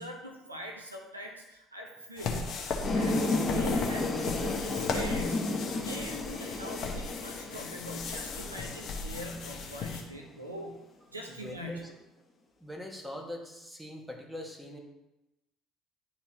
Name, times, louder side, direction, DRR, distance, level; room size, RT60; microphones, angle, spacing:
voice 1, 0.0-10.8 11.1-12.0, equal, 90° right, 0 dB, 0.8 m, -42 dB
sound 1, 2.2-10.0, left 4 dB, 50° left, 1.2 m, -37 dB
sound 2, 2.8-9.8, left 2 dB, 25° left, 1.6 m, -33 dB
voice 2, 11.4-11.9 12.6-14.8, left 1 dB, ahead, -1 dB, 1.6 m, -42 dB
10.5 x 4.3 x 2.9 m, 0.95 s
figure-of-eight pair, 55°, 0 cm